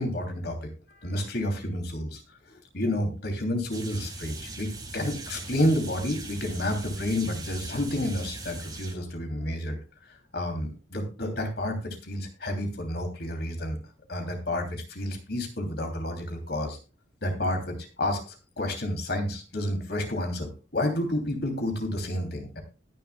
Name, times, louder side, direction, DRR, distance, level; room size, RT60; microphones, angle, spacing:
voice 1, 0.0-2.2 2.5-9.8 10.3-13.8 14.1-16.8 17.2-22.6, left 1 dB, 55° left, 4 dB, 3.0 m, -30 dB
sound 1, 3.7-9.0, right 2 dB, 20° right, 1.9 m, -39 dB
20.5 x 6.9 x 2.3 m, 0.32 s
head